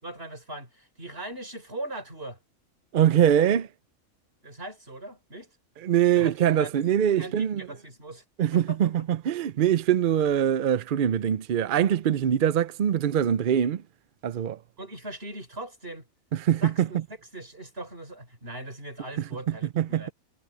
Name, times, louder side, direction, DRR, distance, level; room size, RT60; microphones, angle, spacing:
voice 1, 0.0-2.4 4.4-5.5 6.1-6.9 7.2-8.2 8.5-9.1 14.8-16.1 16.6-17.0 17.3-20.1, right 1 dB, 45° right, 5.6 m, -40 dB
voice 2, 2.9-3.7 5.8-7.7 8.4-13.8 14.2-14.6 16.3-16.9 19.8-20.1, right 9 dB, 60° right, 0.5 m, -23 dB
omnidirectional pair, 1.5 m